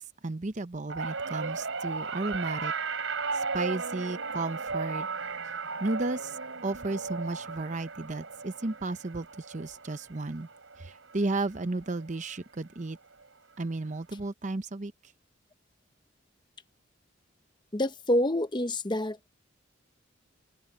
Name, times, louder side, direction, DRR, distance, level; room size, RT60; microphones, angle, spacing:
voice 1, 0.0-2.7 3.3-5.1 5.8-10.5 10.8-13.0 13.6-14.9, right 2 dB, 35° right, 0.7 m, -33 dB
sound 1, 0.9-11.3 11.7-12.1 13.2-13.3, right 4 dB, 75° right, 3.9 m, -36 dB
voice 2, 17.7-19.2, left 1 dB, 20° left, 0.8 m, -27 dB
head